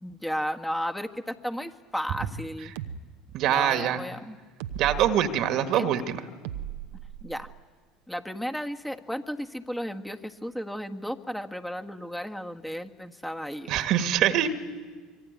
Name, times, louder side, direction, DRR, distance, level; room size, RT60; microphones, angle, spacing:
voice 1, 0.0-2.7 3.5-4.4 5.7-5.9 7.2-7.5 8.1-13.7, equal, 5° left, 5 dB, 1.6 m, -34 dB
sound 1, 2.8-3.0 4.6-5.1 6.4-7.6, right 10 dB, 75° right, 1.0 m, -36 dB
voice 2, 3.3-4.0 4.8-6.2 13.7-14.5, right 10 dB, 60° right, 8 dB, 1.8 m, -24 dB
25.5 x 22.5 x 9.5 m, 1.4 s
hypercardioid pair, 75°, 0 cm